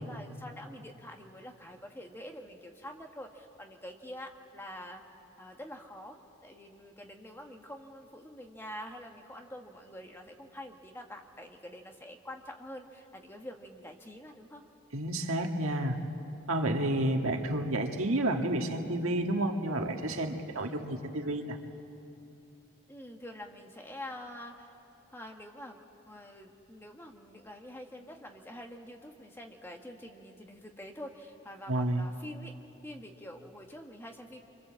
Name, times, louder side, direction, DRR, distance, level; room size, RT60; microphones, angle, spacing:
voice 1, 0.0-5.0 5.4-6.2 6.4-14.6 20.5-20.7 22.9-24.7 25.1-25.8 26.1-32.6 32.8-34.4, left 1 dB, 10° left, 3 dB, 1.4 m, -46 dB
voice 2, 14.9-16.0 16.5-21.6 31.7-32.1, right 1 dB, 85° right, 3 dB, 1.7 m, -30 dB
26.5 x 25.5 x 7.6 m, 2.8 s
head